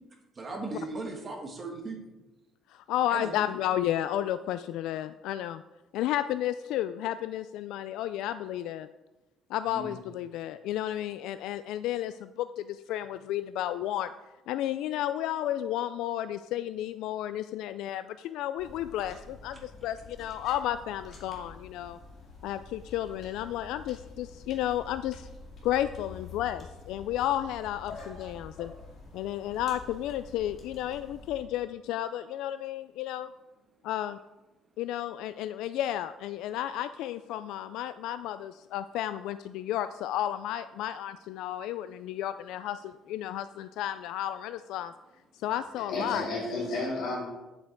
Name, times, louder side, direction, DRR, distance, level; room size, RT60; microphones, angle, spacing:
voice 1, 0.3-2.0 3.1-3.4 9.7-9.9, right 3 dB, 20° right, 1 dB, 1.5 m, -37 dB
voice 2, 2.7-5.6 5.9-8.9 9.5-14.1 14.5-22.0 22.4-25.3 25.6-28.7 29.1-33.3 33.8-34.2 34.8-44.9 45.4-46.3, left 12 dB, 75° left, 12 dB, 0.3 m, -32 dB
sound 1, 18.6-31.4, left 3 dB, 35° left, 2.2 m, -48 dB
voice 3, 45.5-47.3, left 2 dB, 55° left, -3 dB, 3.7 m, -33 dB
9.6 x 7.8 x 4.6 m, 1.0 s
cardioid pair, 180°, 0 cm